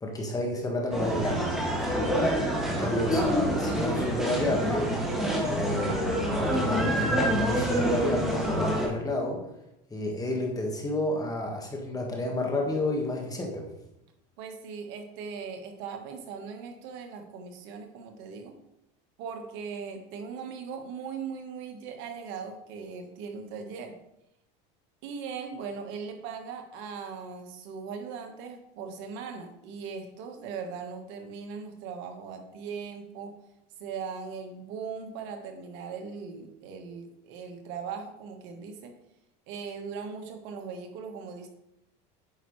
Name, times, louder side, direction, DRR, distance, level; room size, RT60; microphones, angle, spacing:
voice 1, 0.0-2.2 2.7-4.9 5.5-9.4 9.9-13.7, left 1 dB, 15° left, 1 dB, 1.5 m, -31 dB
sound 1, 0.9-8.9, equal, ahead, 2.0 m, -27 dB
voice 2, 14.4-18.6 19.2-24.0 25.0-33.3 33.8-38.9 39.5-41.5, right 6 dB, 65° right, 4 dB, 1.4 m, -39 dB
9.0 x 5.8 x 3.2 m, 0.84 s
supercardioid pair, 115°, 21 cm